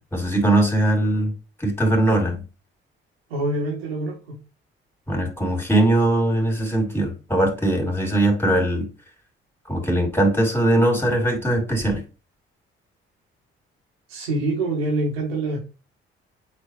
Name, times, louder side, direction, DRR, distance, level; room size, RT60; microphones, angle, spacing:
voice 1, 0.1-1.3 1.6-2.4 5.1-8.9 9.7-12.0, right 1 dB, 5° left, 3.1 m, -20 dB
voice 2, 3.3-4.4 14.1-15.6, right 2 dB, 80° right, 1.9 m, -25 dB
8.3 x 4.2 x 3.2 m
figure-of-eight pair, 45°, 30 cm